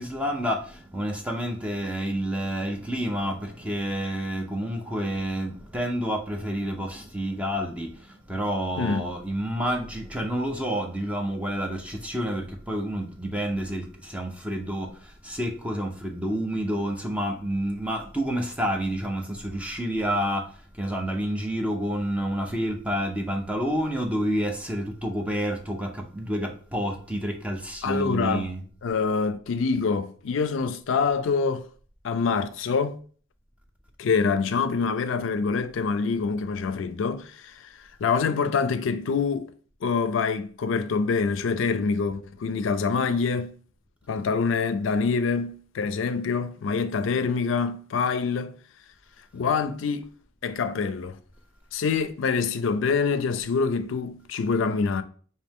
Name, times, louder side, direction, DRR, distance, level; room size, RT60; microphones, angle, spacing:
voice 1, 0.0-28.6, equal, 5° right, 0.6 m, -29 dB
voice 2, 27.8-28.5 28.8-31.6 32.0-33.0 34.0-37.7 38.0-39.5 39.8-43.6 44.1-48.6 49.3-50.1 50.4-51.2 51.7-55.0, left 5 dB, 70° left, 0.4 m, -25 dB
4.2 x 2.8 x 3.5 m
head